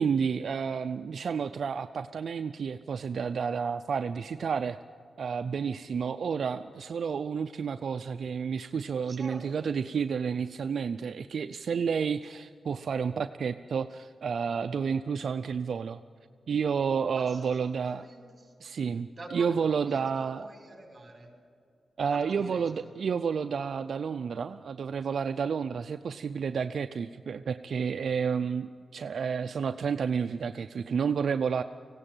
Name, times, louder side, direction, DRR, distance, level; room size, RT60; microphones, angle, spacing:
voice 1, 0.0-4.8 5.2-16.0 16.5-18.1 18.6-20.5 22.0-31.6, right 6 dB, 70° right, 8 dB, 0.5 m, -30 dB
voice 2, 9.1-9.6 17.1-18.5 19.1-21.3 22.1-22.8, right 2 dB, 30° right, 2 dB, 5.6 m, -47 dB
18.5 x 16.5 x 9.1 m, 2.2 s
cardioid pair, 85°, 0 cm